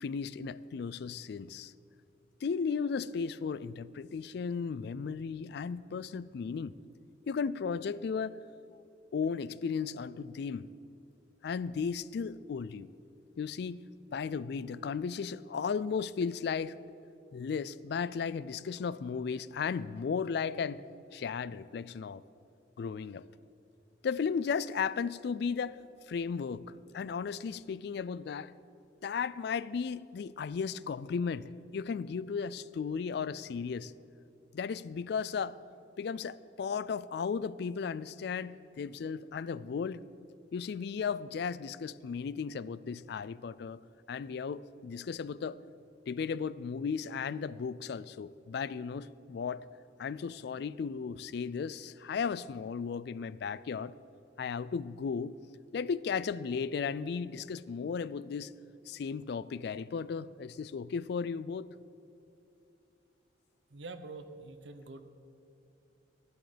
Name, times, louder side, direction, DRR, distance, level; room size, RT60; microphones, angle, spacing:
voice 1, 0.0-1.7 2.4-6.8 7.3-8.4 9.1-10.7 11.4-12.9 13.4-13.8 14.1-16.8 17.3-20.8 21.1-22.2 22.8-23.2 24.0-25.8 26.1-26.6 26.9-28.5 29.0-33.9 34.5-35.6 36.0-40.0 40.5-43.8 44.1-45.6 46.1-49.6 50.0-53.9 54.4-55.3 55.7-58.5 58.9-61.7, left 6 dB, 60° left, 18 dB, 0.3 m, -35 dB
voice 2, 63.7-65.0, right 3 dB, 70° right, 10 dB, 0.8 m, -45 dB
12.5 x 11.0 x 5.1 m, 2.8 s
head